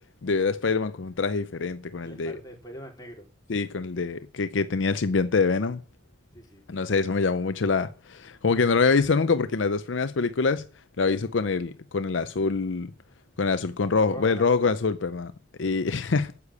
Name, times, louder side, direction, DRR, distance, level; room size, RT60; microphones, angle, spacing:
voice 1, 0.2-2.4 3.5-5.8 6.7-10.7 11.0-12.9 13.4-15.3 15.6-16.3, left 4 dB, 75° left, 0.6 m, -25 dB
voice 2, 2.0-3.3 6.3-6.6 13.9-14.7, equal, 20° left, 4.3 m, -43 dB
9.9 x 8.4 x 8.4 m
head